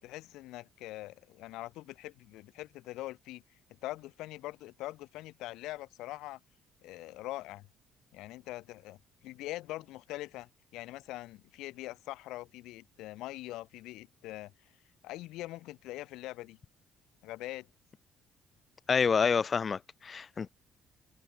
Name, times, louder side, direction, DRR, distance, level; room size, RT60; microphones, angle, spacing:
voice 1, 0.0-3.4 3.8-6.4 6.8-7.7 8.1-9.0 9.2-14.5 15.0-16.6 17.2-17.7, left 17 dB, 90° left, 5.0 m, -43 dB
voice 2, 18.9-20.5, left 6 dB, 35° left, 2.3 m, -28 dB
cardioid pair, 120°, 0 cm